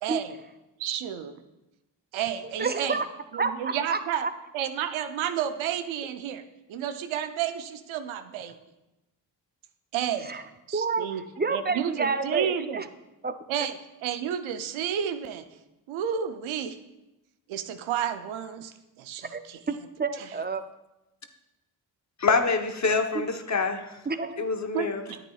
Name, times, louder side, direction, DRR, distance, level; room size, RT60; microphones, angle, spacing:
voice 1, 0.0-0.4 0.8-1.3 2.1-3.0 3.3-4.3 4.5-6.4 6.7-8.5 9.9-10.3 10.7-11.2 11.5-12.8 13.5-13.8 14.0-15.5 15.9-16.8 17.5-19.6 20.2-20.3 24.7-25.2, right 9 dB, 90° right, 9 dB, 0.6 m, -31 dB
voice 2, 2.6-3.0 3.3-4.3 10.3-10.4 10.7-11.1 11.4-12.8 13.2-13.3 19.3-19.4 19.7-20.6 23.1-23.3 24.1-24.5, right 4 dB, 20° right, 10 dB, 0.5 m, -29 dB
voice 3, 22.2-24.0 24.4-25.0, left 4 dB, 35° left, 6 dB, 0.9 m, -25 dB
9.6 x 8.5 x 2.3 m, 0.97 s
supercardioid pair, 45°, 46 cm